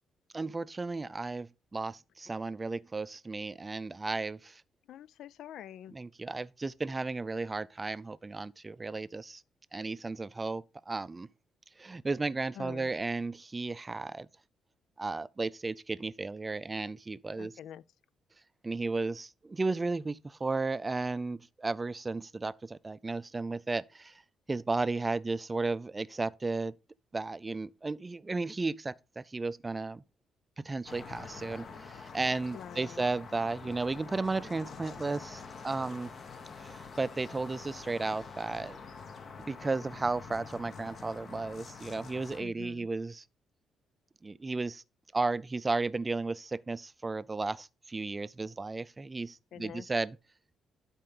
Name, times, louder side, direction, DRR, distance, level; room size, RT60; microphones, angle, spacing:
voice 1, 0.3-4.6 5.9-9.4 9.7-11.3 11.8-14.3 15.0-17.5 18.6-24.2 24.5-26.7 27.1-30.0 30.6-36.1 36.6-38.8 39.5-43.2 44.2-44.8 45.1-50.2, right 3 dB, 25° right, 0.5 m, -34 dB
voice 2, 4.9-6.0 12.5-12.9 17.4-17.8 32.5-33.1 42.4-42.9 49.5-49.9, left 10 dB, 75° left, 0.4 m, -46 dB
sound 1, 30.9-42.4, left 5 dB, 50° left, 1.4 m, -47 dB
sound 2, 33.4-40.5, left 5 dB, 30° left, 2.5 m, -55 dB
12.0 x 4.5 x 3.8 m
cardioid pair, 90°, 0 cm